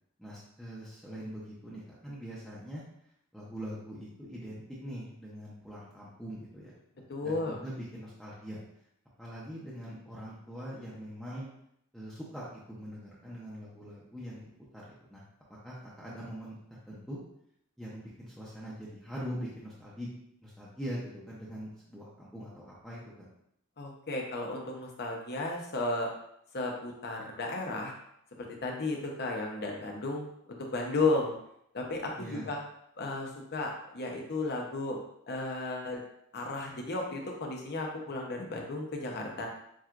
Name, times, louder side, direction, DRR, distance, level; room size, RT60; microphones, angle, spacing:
voice 1, 0.2-2.8 3.3-6.7 7.2-8.6 9.2-11.5 11.9-15.2 15.5-17.2 17.8-20.1 20.4-23.3 32.1-32.5, equal, ahead, -8 dB, 0.7 m, -42 dB
voice 2, 7.1-7.6 23.8-26.1 26.5-27.9 28.4-30.3 30.7-31.4 31.7-32.6 33.0-35.0 35.3-36.0 36.3-39.5, left 2 dB, 45° left, 0 dB, 0.8 m, -34 dB
7.3 x 2.4 x 2.5 m, 0.75 s
head